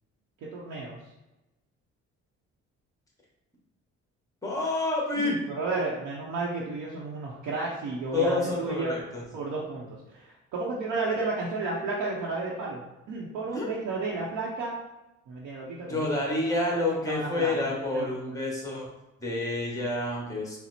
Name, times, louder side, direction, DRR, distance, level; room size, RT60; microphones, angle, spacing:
voice 1, 0.5-1.0 5.2-8.9 9.3-12.8 13.1-14.7 15.3-16.0 17.1-17.5 17.9-18.1, right 3 dB, 75° right, -4 dB, 0.8 m, -32 dB
voice 2, 4.4-5.4 8.1-9.2 13.5-13.7 15.9-18.9 19.2-20.6, left 2 dB, 10° left, -2 dB, 1.4 m, -28 dB
4.3 x 2.0 x 4.1 m, 1.0 s
cardioid pair, 90°, 30 cm